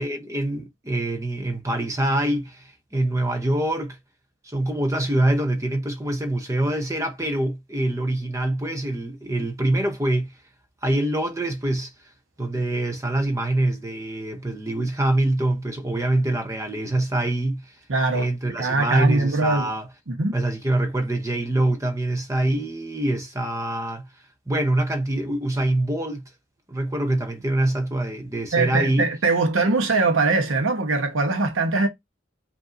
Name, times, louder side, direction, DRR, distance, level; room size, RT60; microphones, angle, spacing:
voice 1, 0.0-4.0 4.4-10.3 10.8-11.9 12.4-17.6 18.1-19.9 20.3-24.1 24.5-26.2 26.7-29.1, right 1 dB, 15° right, 0.7 m, -24 dB
voice 2, 17.9-18.3 18.6-19.7 20.1-20.3 28.5-31.9, right 3 dB, 85° right, 0.9 m, -22 dB
5.2 x 2.6 x 2.5 m
head